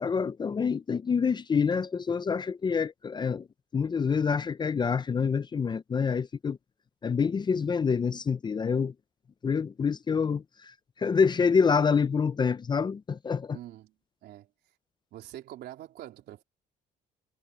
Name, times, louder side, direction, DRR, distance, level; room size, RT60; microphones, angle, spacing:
voice 1, 0.0-3.5 3.7-6.6 7.0-8.9 9.4-13.6, left 6 dB, 25° left, 0.5 m, -27 dB
voice 2, 13.5-14.5 15.1-16.4, right 13 dB, 70° right, 3.5 m, -45 dB
cardioid pair, 110°, 17 cm